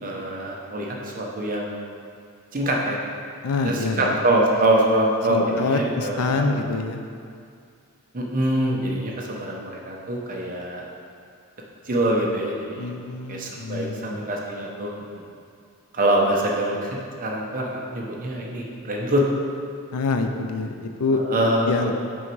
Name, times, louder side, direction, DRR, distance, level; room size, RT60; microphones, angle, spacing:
voice 1, 0.0-2.0 2.5-3.0 3.6-6.5 8.1-10.9 11.8-12.9 13.3-15.2 15.9-19.2 21.1-21.9, right 1 dB, 40° right, -2 dB, 0.9 m, -24 dB
voice 2, 3.4-4.2 5.3-7.0 12.8-14.2 19.9-21.2 21.6-21.9, left 3 dB, 80° left, 6 dB, 0.5 m, -26 dB
6.1 x 5.2 x 4.6 m, 2.3 s
head